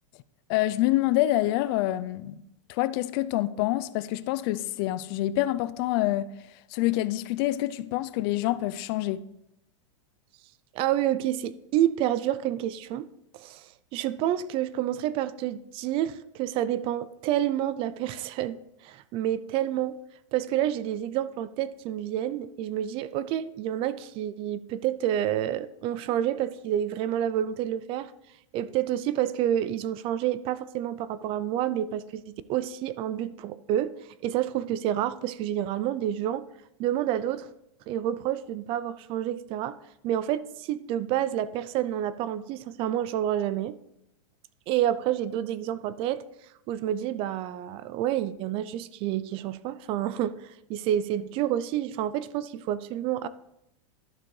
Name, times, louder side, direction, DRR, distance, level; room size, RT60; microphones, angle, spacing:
voice 1, 0.5-2.4 2.7-6.3 6.7-9.2, left 15 dB, 50° left, 0.4 m, -26 dB
voice 2, 10.7-13.1 13.3-20.0 20.3-28.1 28.5-34.0 34.2-36.5 36.8-37.5 37.9-39.8 40.0-43.8 44.7-46.2 46.7-53.3, right 11 dB, 35° right, 0.3 m, -29 dB
11.5 x 6.7 x 3.2 m
supercardioid pair, 140°, 16 cm